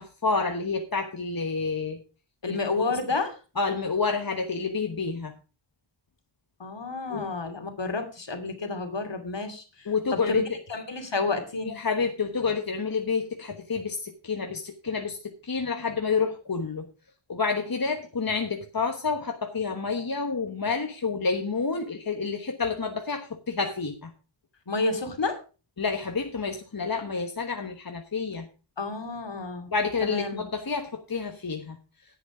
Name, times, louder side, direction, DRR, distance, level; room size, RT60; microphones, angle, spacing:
voice 1, 0.0-2.0 2.5-2.9 3.6-5.3 7.1-7.3 9.9-10.4 11.6-15.2 15.4-16.9 17.3-24.1 25.8-28.4 29.7-31.8, left 4 dB, 45° left, 5 dB, 1.3 m, -29 dB
voice 2, 2.4-3.3 6.6-9.6 10.1-10.4 10.7-11.8 24.7-25.4 28.8-29.7 30.0-30.4, left 3 dB, 65° left, 6 dB, 2.6 m, -30 dB
10.5 x 8.3 x 4.9 m, 0.34 s
wide cardioid pair, 50°, 47 cm